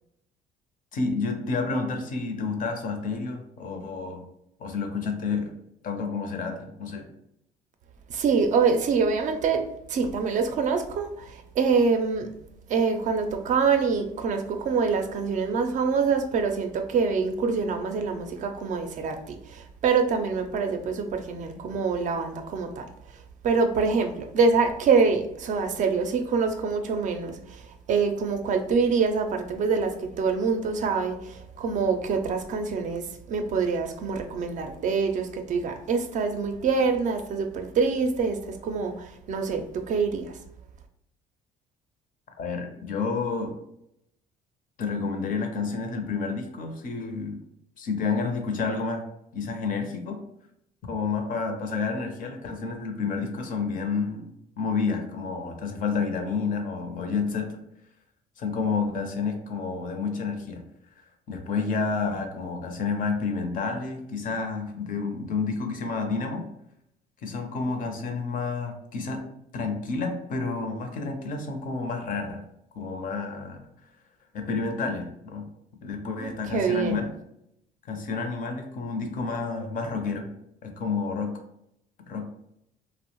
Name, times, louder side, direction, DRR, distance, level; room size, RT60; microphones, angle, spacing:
voice 1, 0.9-4.2 4.6-5.5 5.8-7.0 42.4-43.5 44.8-47.4 47.8-49.0 49.3-50.2 50.8-57.6 58.4-60.6 61.3-66.4 67.2-69.3 69.5-72.4 72.7-73.6 74.3-75.5 75.8-77.1 77.9-80.3 80.6-81.3 82.1-82.3, left 4 dB, 55° left, 5 dB, 0.5 m, -30 dB
voice 2, 8.1-9.6 9.9-12.3 12.7-22.9 23.4-33.0 33.3-40.4 76.2-77.0, right 5 dB, 45° right, 6 dB, 0.4 m, -25 dB
2.6 x 2.0 x 2.9 m, 0.78 s
cardioid pair, 110°, 17 cm